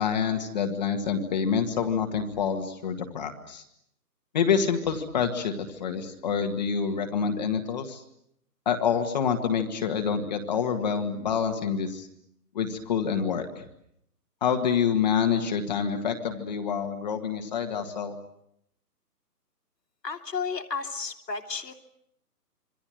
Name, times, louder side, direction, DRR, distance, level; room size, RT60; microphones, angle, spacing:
voice 1, 0.0-3.6 4.3-8.0 8.7-12.1 12.5-13.6 14.4-18.2, left 7 dB, 25° left, 5 dB, 1.8 m, -27 dB
voice 2, 20.0-21.8, left 5 dB, 80° left, 5 dB, 3.1 m, -33 dB
27.0 x 24.5 x 7.8 m, 0.75 s
hypercardioid pair, 165°, 49 cm